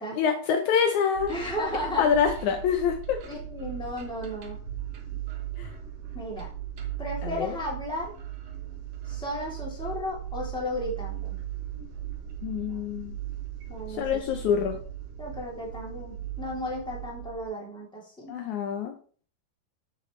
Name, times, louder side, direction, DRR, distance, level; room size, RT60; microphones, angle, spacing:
voice 1, 0.2-1.3 2.0-3.2 5.6-5.7 7.2-7.6 12.4-13.1 13.9-14.8 18.3-18.9, left 7 dB, 90° left, 5 dB, 1.6 m, -26 dB
sound 1, 1.2-17.4, right 11 dB, 60° right, 1.8 m, -38 dB
voice 2, 1.3-2.0 3.3-4.6 6.1-6.5 7.0-8.1 9.1-11.4 13.7-14.1 15.2-18.3, left 1 dB, ahead, -3 dB, 2.1 m, -34 dB
9.6 x 6.7 x 3.2 m, 0.43 s
omnidirectional pair, 4.4 m